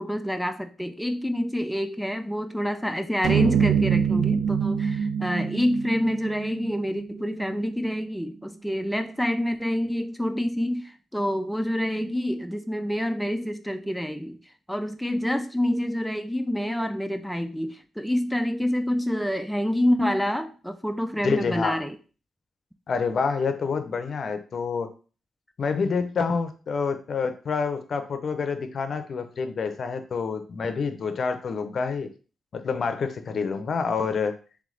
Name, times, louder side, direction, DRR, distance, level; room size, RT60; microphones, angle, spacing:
voice 1, 0.0-14.4 14.7-22.0, equal, ahead, 6 dB, 0.4 m, -27 dB
sound 1, 3.2-7.6, right 7 dB, 80° right, 0.3 m, -25 dB
voice 2, 21.2-21.8 22.9-24.9 25.6-32.1 32.5-34.4, left 5 dB, 55° left, 8 dB, 0.6 m, -27 dB
3.3 x 3.2 x 3.8 m, 0.37 s
cardioid pair, 75°, 0 cm